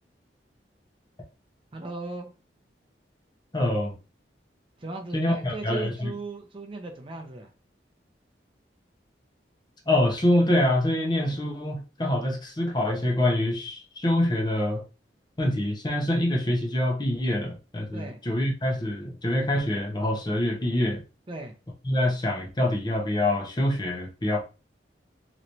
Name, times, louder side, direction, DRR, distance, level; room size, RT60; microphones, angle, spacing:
voice 1, 1.7-2.3 4.8-7.5 11.3-11.4 17.9-18.2 21.3-21.5, right 3 dB, 30° right, 3 dB, 0.6 m, -37 dB
voice 2, 3.5-3.9 5.1-6.1 9.9-14.8 15.4-21.0 21.8-24.4, left 1 dB, 25° left, 0 dB, 0.8 m, -25 dB
3.2 x 3.0 x 2.7 m, 0.32 s
head